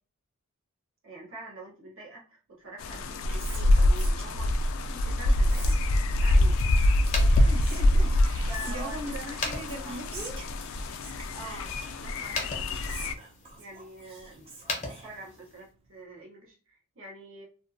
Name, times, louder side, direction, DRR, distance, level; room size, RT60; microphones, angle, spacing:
voice 1, 1.0-5.8 6.2-6.6 8.5-10.0 11.3-13.1 13.6-14.5 14.8-17.4, right 1 dB, 60° right, 0.8 m, -45 dB
sound 1, 2.8-13.1, left 1 dB, 65° left, 0.3 m, -25 dB
Whispering, 2.8-15.7, right 3 dB, 25° right, 0.5 m, -48 dB
sound 2, 7.0-15.7, left 3 dB, 35° left, 0.7 m, -40 dB
voice 2, 7.1-10.4, right 1 dB, 90° right, 0.9 m, -40 dB
2.5 x 2.3 x 2.5 m
head